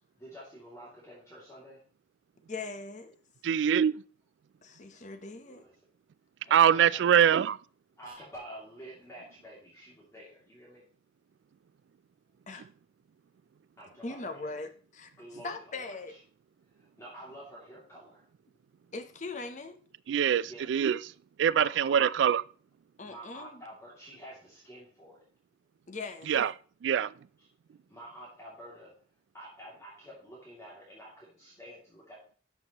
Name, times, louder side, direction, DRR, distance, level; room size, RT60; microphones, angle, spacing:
voice 1, 0.2-1.8 5.4-5.7 6.4-7.3 7.9-10.8 13.8-14.5 15.2-16.2 16.7-18.3 20.4-20.7 21.5-22.0 23.0-25.2 27.4-27.5 27.9-28.9 29.3-32.4, right 1 dB, 15° left, 2.5 m, -49 dB
voice 2, 2.5-3.2 4.6-5.6 12.5-12.7 14.0-15.1 15.4-16.1 18.9-19.8 23.0-23.6 25.9-26.3, left 3 dB, 40° left, 0.8 m, -40 dB
voice 3, 3.4-3.9 6.5-7.5 20.1-21.0 21.4-22.4 26.3-26.5 26.8-27.1, right 8 dB, 75° right, 0.3 m, -23 dB
12.0 x 5.8 x 3.0 m
head